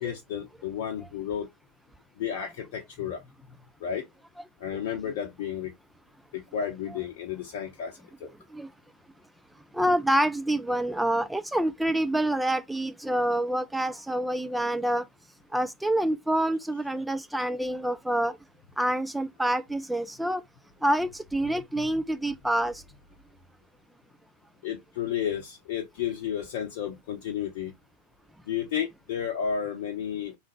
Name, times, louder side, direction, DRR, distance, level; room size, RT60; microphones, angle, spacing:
voice 1, 0.0-1.5 2.2-3.2 3.8-4.1 4.6-5.7 6.3-8.3 21.8-21.9 24.6-27.7 28.5-30.4, left 8 dB, 50° left, 0.7 m, -32 dB
voice 2, 9.7-15.0 15.5-18.4 18.8-20.4 20.8-22.8, right 1 dB, 5° right, 0.4 m, -27 dB
3.7 x 3.2 x 3.0 m
figure-of-eight pair, 90°, 0 cm